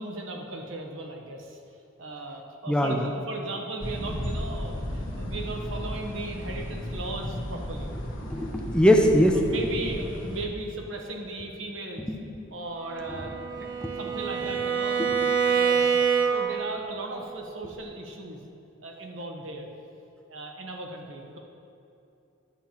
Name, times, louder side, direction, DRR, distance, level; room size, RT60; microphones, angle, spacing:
voice 1, 0.0-1.6 2.0-7.9 9.3-12.1 12.5-13.7 14.0-15.2 15.4-16.0 16.3-18.5 18.8-19.7 20.3-21.4, right 2 dB, 80° right, 1 dB, 1.0 m, -37 dB
voice 2, 2.7-3.1 8.3-9.4 12.1-12.2 13.8-14.0 15.0-15.2, equal, 5° left, 2 dB, 0.5 m, -21 dB
sound 1, 3.8-10.4, equal, 80° left, 1.1 m, -34 dB
Bowed string instrument, 12.8-16.6, right 6 dB, 45° right, 0.8 m, -26 dB
11.0 x 7.1 x 3.0 m, 2.7 s
head